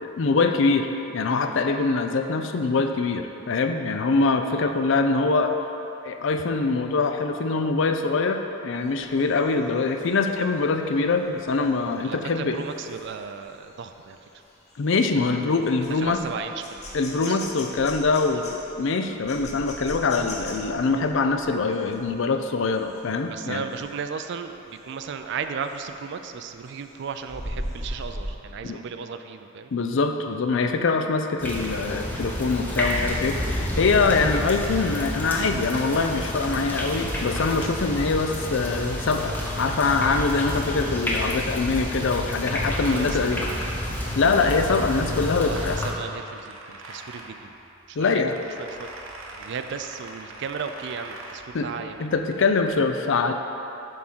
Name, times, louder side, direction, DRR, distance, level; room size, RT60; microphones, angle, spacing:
voice 1, 0.0-5.5 6.0-12.6 14.8-16.2 16.9-18.4 18.8-23.6 28.6-28.8 29.7-43.4 44.1-45.8 48.0-48.4 51.5-51.6 52.0-53.3, left 4 dB, 65° left, 5 dB, 0.5 m, -23 dB
sound 1, 8.7-23.3 23.7-24.0 24.3-26.0 26.4-28.4, left 1 dB, 35° left, 1.0 m, -41 dB
voice 2, 12.0-14.4 15.9-17.4 23.2-29.7 42.7-43.7 45.4-47.5 47.9-48.9 49.3-52.1, right 6 dB, 60° right, 8 dB, 0.4 m, -35 dB
sound 2, 31.4-45.9, equal, 10° left, 0.8 m, -29 dB
sound 3, 44.3-52.8, right 2 dB, 85° right, 0.8 m, -44 dB
7.7 x 3.7 x 6.0 m, 3.0 s
head